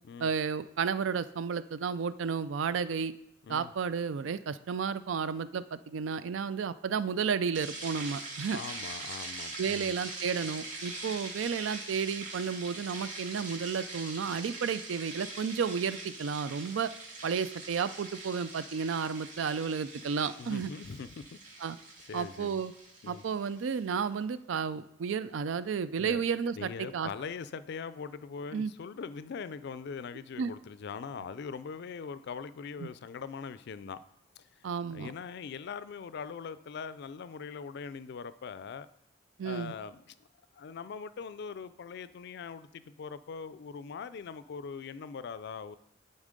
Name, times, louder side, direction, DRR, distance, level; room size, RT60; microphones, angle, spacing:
voice 1, 0.2-3.1 3.5-8.6 9.6-16.9 17.2-20.7 21.6-21.8 22.1-22.7 23.1-27.1 28.5-28.7 30.4-30.5 32.8-32.9 34.6-35.1 39.4-39.7, right 6 dB, 75° right, 15 dB, 0.4 m, -32 dB
sound 1, 7.5-23.8, right 2 dB, 40° right, 2.1 m, -43 dB
voice 2, 8.5-9.9 20.4-21.4 22.1-22.6 23.0-23.2 26.0-26.2 26.6-34.0 34.4-34.5 34.9-38.9 39.4-40.2 40.5-45.8, left 5 dB, 60° left, 15 dB, 0.4 m, -41 dB
11.0 x 4.1 x 5.1 m, 0.78 s
head